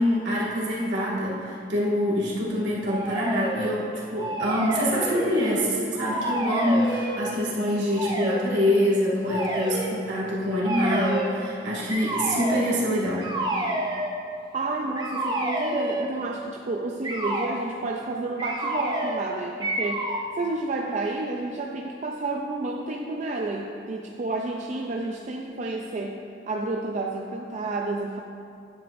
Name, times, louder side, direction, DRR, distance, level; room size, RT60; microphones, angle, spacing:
voice 1, 0.0-13.3, equal, 75° right, -5 dB, 2.2 m, -25 dB
sound 1, 2.9-3.8 4.1-5.6 5.9-7.2 7.9-8.4 9.3-9.9 10.6-11.4 11.9-12.6 13.2-14.1 15.0-16.2 17.0-17.5 18.4-19.3 19.6-20.3, right 1 dB, 25° right, 1.0 m, -29 dB
voice 2, 14.5-20.1 20.4-26.2 26.5-28.2, right 2 dB, 40° right, 1 dB, 0.4 m, -30 dB
10.0 x 8.9 x 2.6 m, 2.5 s
head